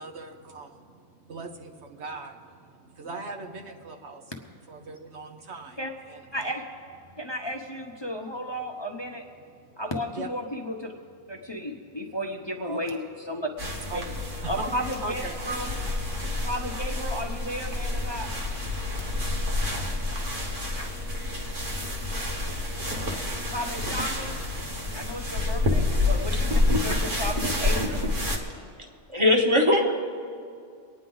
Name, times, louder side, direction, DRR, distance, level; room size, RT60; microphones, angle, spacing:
voice 1, 0.0-4.3 4.7-5.8 6.1-6.6 7.0-7.2 8.0-8.1 9.4-9.8 10.1-10.3 11.4-11.9 12.6-13.0 13.9-14.1 14.4-14.7 15.0-15.4, right 3 dB, 65° right, 3 dB, 1.2 m, -40 dB
voice 2, 7.2-9.2 9.8-10.9 11.3-13.0 13.3-13.5 13.9-14.0 14.5-15.7 16.4-18.3 23.5-24.4 24.9-28.0, equal, 25° left, 1 dB, 0.8 m, -33 dB
sound 1, 13.6-28.4, left 2 dB, 45° right, 1.6 m, -28 dB
voice 3, 29.1-29.9, left 1 dB, 25° right, 2 dB, 1.3 m, -20 dB
24.0 x 9.6 x 3.9 m, 2.3 s
omnidirectional pair, 1.2 m